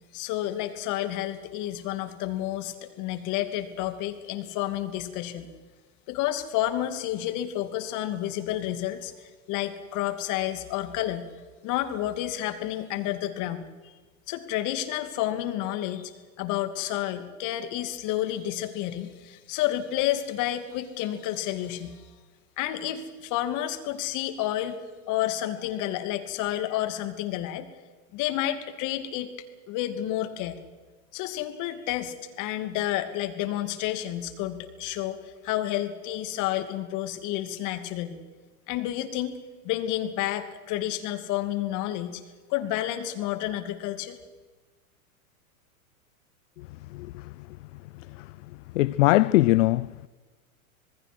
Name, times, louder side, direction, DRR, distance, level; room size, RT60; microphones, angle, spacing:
voice 1, 0.1-5.5 6.1-11.3 11.6-13.9 14.3-16.1 16.4-22.0 22.6-24.8 25.1-27.7 28.1-29.3 29.7-30.6 31.1-38.2 38.7-39.4 39.6-42.2 42.5-44.2, left 13 dB, 45° left, 2.8 m, -30 dB
voice 2, 46.6-47.3 48.2-48.3 48.7-50.1, left 18 dB, 60° left, 0.7 m, -22 dB
26.5 x 20.0 x 6.3 m
hypercardioid pair, 110°, 43 cm